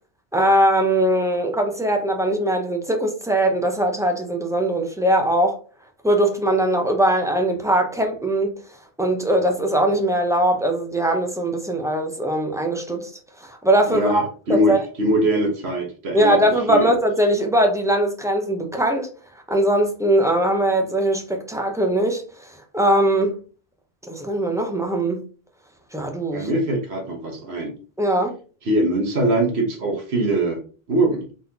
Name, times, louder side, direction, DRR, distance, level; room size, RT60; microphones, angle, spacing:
voice 1, 0.3-5.6 6.0-8.6 9.0-13.1 13.4-14.8 16.1-19.1 19.5-23.4 24.0-25.2 25.9-26.5 28.0-28.3, right 1 dB, 5° right, 0.6 m, -21 dB
voice 2, 13.9-16.4 16.7-16.9 26.3-27.7 28.6-30.6 30.9-31.3, right 1 dB, 90° right, 1.4 m, -22 dB
4.1 x 3.6 x 2.8 m
omnidirectional pair, 1.0 m